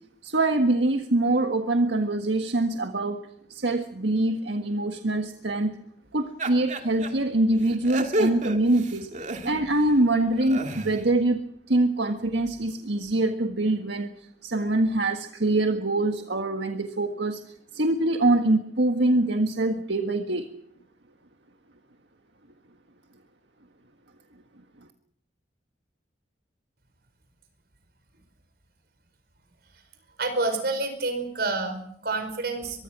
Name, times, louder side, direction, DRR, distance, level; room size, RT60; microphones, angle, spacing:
voice 1, 0.2-5.8 6.1-9.1 9.4-11.4 11.7-17.4 17.7-20.5, right 2 dB, 75° right, 6 dB, 1.7 m, -24 dB
sound 1, 6.4-7.1 7.6-9.8 10.3-11.0, right 1 dB, 45° right, 2.4 m, -31 dB
voice 2, 30.2-32.8, right 3 dB, 60° right, 8 dB, 5.0 m, -28 dB
23.5 x 23.5 x 6.2 m, 0.70 s
head